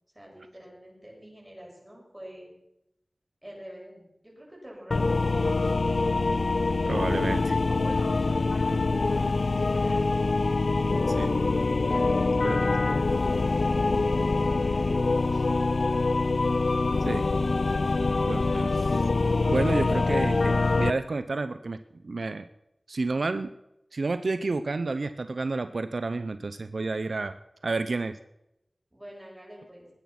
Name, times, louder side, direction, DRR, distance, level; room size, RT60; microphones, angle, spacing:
voice 1, 0.1-2.5 3.4-5.8 6.8-10.3 11.9-16.0 28.9-29.9, equal, 15° right, -2 dB, 7.8 m, -46 dB
sound 1, 4.9-20.9, left 3 dB, 80° left, 0.6 m, -25 dB
voice 2, 6.9-7.5 11.1-11.4 12.4-12.6 17.0-17.3 18.3-19.0 19.5-21.8 22.0-22.5 22.9-23.5 23.9-27.4 27.6-28.2, right 3 dB, 85° right, 10 dB, 0.7 m, -30 dB
20.0 x 9.5 x 6.0 m, 0.84 s
wide cardioid pair, 55°, 0 cm